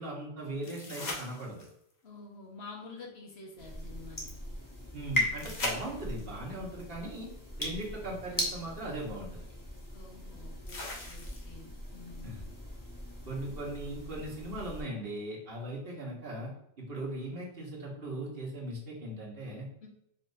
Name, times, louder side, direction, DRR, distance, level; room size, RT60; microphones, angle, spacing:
voice 1, 0.0-1.6 4.9-7.3 7.6-9.4 12.2-12.4 13.2-16.5 16.8-19.7, right 1 dB, 65° right, -3 dB, 1.5 m, -39 dB
sound 1, 0.6-1.9 5.4-6.4 8.3-8.4 10.7-11.7 14.6-14.7, left 2 dB, 45° left, 1.0 m, -39 dB
voice 2, 2.0-4.3 9.9-12.4 19.8-19.9, left 3 dB, 75° left, 0 dB, 1.3 m, -49 dB
sound 2, 3.6-14.8, left 1 dB, 20° left, 1.0 m, -39 dB
4.8 x 3.5 x 2.6 m, 0.76 s
omnidirectional pair, 1.1 m